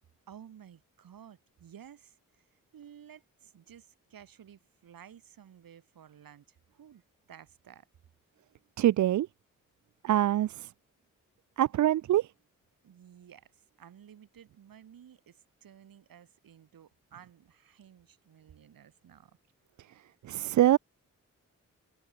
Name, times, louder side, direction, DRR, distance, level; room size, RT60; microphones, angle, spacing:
voice 1, 0.3-7.0 7.3-7.9 12.8-19.4, right 9 dB, 75° right, 2.8 m, -54 dB
voice 2, 8.8-9.3 10.0-10.7 11.6-12.3 20.2-20.8, right 12 dB, 60° right, 0.4 m, -24 dB
open air
supercardioid pair, 45°, 34 cm